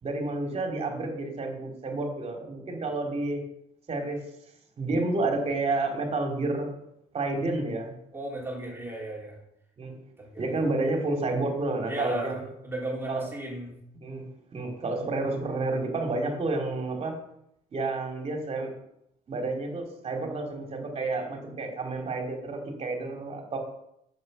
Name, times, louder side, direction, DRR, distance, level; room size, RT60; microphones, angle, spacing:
voice 1, 0.0-3.4 3.9-4.2 4.8-6.7 7.1-7.9 9.8-9.9 10.4-12.5 13.1-13.2 14.0-14.2 14.5-17.2 17.7-18.7 19.3-23.6, right 2 dB, 35° right, 2 dB, 2.9 m, -30 dB
voice 2, 8.1-9.4 10.2-10.5 11.9-13.8, right 1 dB, 15° right, -3 dB, 3.2 m, -35 dB
7.8 x 7.4 x 6.7 m, 0.77 s
cardioid pair, 110°, 17 cm